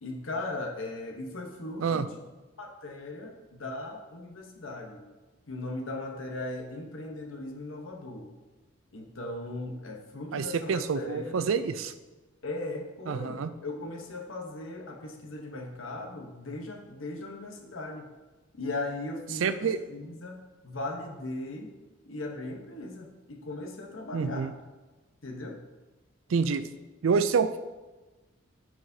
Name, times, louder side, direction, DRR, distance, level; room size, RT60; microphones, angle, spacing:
voice 1, 0.0-2.2 2.6-5.0 5.5-8.3 8.9-11.4 12.4-18.0 18.6-20.4 20.6-21.7 22.1-24.5 25.2-25.6, left 2 dB, 80° left, 2 dB, 1.0 m, -38 dB
voice 2, 10.3-11.9 13.1-13.5 19.3-19.8 24.1-24.6 26.3-26.6 27.0-27.6, right 5 dB, 80° right, 11 dB, 0.4 m, -27 dB
9.4 x 4.8 x 2.7 m, 1.2 s
head